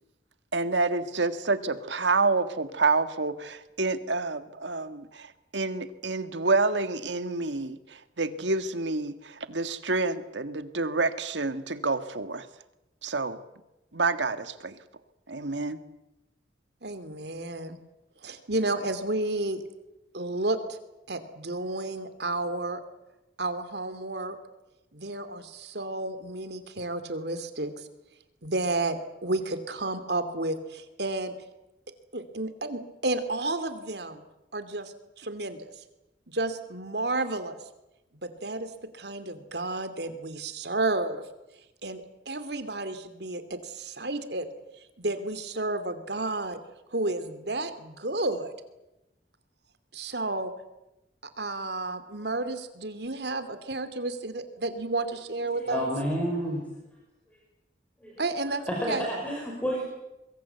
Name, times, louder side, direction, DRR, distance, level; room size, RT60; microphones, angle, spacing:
voice 1, 0.5-12.5 13.0-13.4 13.9-14.7 15.3-15.8, right 3 dB, 90° right, 11 dB, 1.7 m, -28 dB
voice 2, 16.8-17.8 18.2-19.6 20.1-20.8 21.1-22.8 23.4-24.4 24.9-27.9 28.4-31.3 32.1-34.2 34.5-35.6 36.3-37.6 38.2-41.2 41.8-44.5 45.0-46.6 46.9-48.5 49.9-50.5 51.4-55.9 58.2-58.6 58.9-59.1, right 2 dB, 70° right, 11 dB, 2.6 m, -31 dB
voice 3, 55.5-56.7 58.0-58.2 58.7-59.8, equal, 10° left, -1 dB, 5.0 m, -30 dB
24.0 x 22.5 x 8.1 m, 0.94 s
head